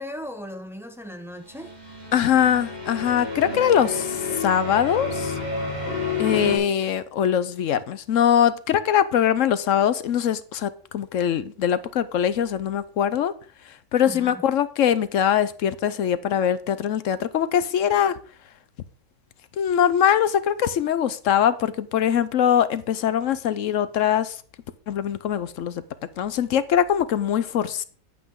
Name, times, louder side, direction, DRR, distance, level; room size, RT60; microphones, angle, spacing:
voice 1, 0.0-1.7 14.0-14.4, equal, ahead, 0.7 m, -37 dB
sound 1, 1.5-6.6, left 3 dB, 50° right, 5.0 m, -30 dB
voice 2, 2.1-5.3 6.2-13.3 13.9-18.2 19.6-24.4 24.9-25.8 26.2-27.8, left 9 dB, 65° left, 0.9 m, -22 dB
9.5 x 8.5 x 3.7 m
omnidirectional pair, 1.7 m